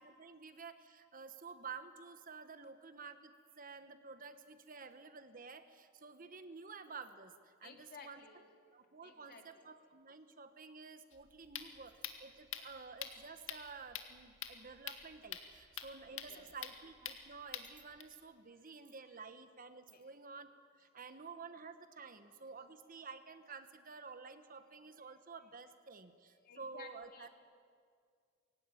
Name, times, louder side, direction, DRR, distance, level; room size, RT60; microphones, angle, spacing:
voice 1, 0.0-8.3 8.7-20.5 20.8-27.4, right 5 dB, 45° right, 10 dB, 1.2 m, -51 dB
voice 2, 7.6-8.4 9.0-9.6 16.1-16.4 18.6-19.2 19.9-20.0 26.4-27.4, left 5 dB, 50° left, 3 dB, 2.7 m, -56 dB
sound 1, 11.1-18.0, left 9 dB, 90° left, 1.9 m, -47 dB
22.0 x 17.0 x 9.9 m, 2.1 s
head